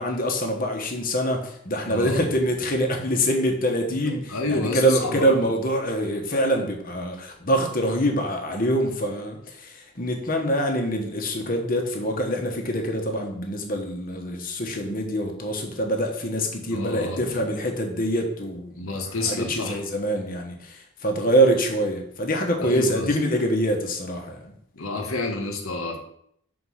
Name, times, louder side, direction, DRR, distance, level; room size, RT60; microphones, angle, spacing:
voice 1, 0.0-24.5, equal, 40° left, 3 dB, 1.2 m, -25 dB
voice 2, 1.9-2.3 4.0-5.4 16.7-17.5 18.7-19.8 22.6-23.2 24.7-26.0, left 3 dB, 70° left, 2 dB, 1.3 m, -29 dB
5.8 x 4.5 x 6.3 m, 0.70 s
head